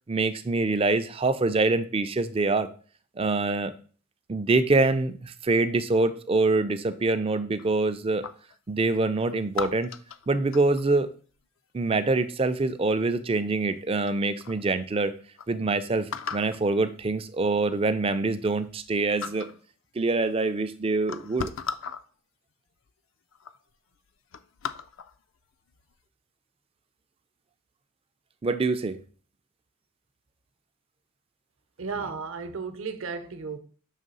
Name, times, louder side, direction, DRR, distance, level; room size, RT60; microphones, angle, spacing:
voice 1, 0.1-2.7 3.2-3.7 4.3-8.3 8.7-9.9 10.3-11.1 11.7-15.1 15.5-19.5 20.0-21.5 28.4-29.0, right 3 dB, 25° right, 0.4 m, -25 dB
sound 1, 7.6-8.6 9.5-11.0 12.6-13.0 13.7-13.8 14.0-14.6 15.1-15.2 15.4-15.5 16.1-16.6 17.6-17.7 18.1-18.9 19.2-19.6 20.5-20.6 21.0-22.0 22.9-23.0 23.3-23.6 23.9-25.2 25.7-25.9, left 6 dB, 60° left, 0.4 m, -37 dB
voice 2, 31.8-33.6, right 5 dB, 60° right, 0.7 m, -34 dB
6.4 x 3.2 x 5.4 m
head